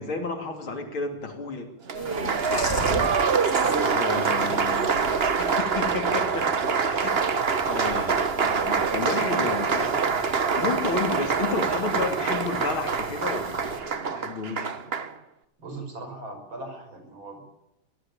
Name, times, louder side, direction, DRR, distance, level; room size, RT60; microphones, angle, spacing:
voice 1, 0.0-1.7 2.2-3.1 3.9-5.1 5.4-10.0 10.5-14.7, left 4 dB, 70° left, 5 dB, 3.9 m, -32 dB
Chewing mastication, 1.9-13.8, left 1 dB, 50° left, 4.8 m, -39 dB
Applause, 1.9-15.1, right 5 dB, 35° right, 1.0 m, -25 dB
voice 2, 3.5-4.4 4.7-5.0 15.6-17.4, right 2 dB, 65° right, 4 dB, 6.7 m, -38 dB
24.5 x 18.0 x 8.8 m, 0.85 s
omnidirectional pair, 2.4 m